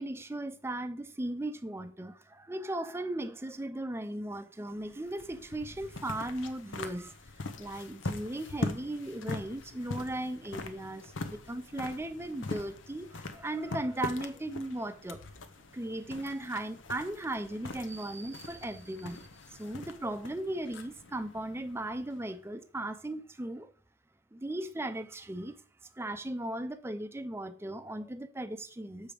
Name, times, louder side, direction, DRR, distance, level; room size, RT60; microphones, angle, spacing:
voice 1, 0.0-7.1 7.6-15.2 15.7-23.7 24.3-25.6 25.9-29.1, right 1 dB, 15° right, 0.5 m, -37 dB
sound 1, 4.7-22.4, left 2 dB, 85° left, 0.8 m, -42 dB
7.0 x 5.1 x 5.0 m
head